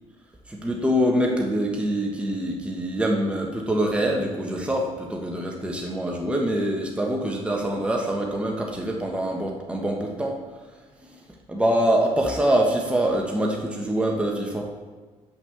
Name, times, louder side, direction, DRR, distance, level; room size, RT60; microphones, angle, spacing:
voice 1, 0.5-10.4 11.1-11.2 11.5-14.7, right 1 dB, 10° right, 0 dB, 1.3 m, -24 dB
5.9 x 5.5 x 6.9 m, 1.3 s
cardioid pair, 90°, 13 cm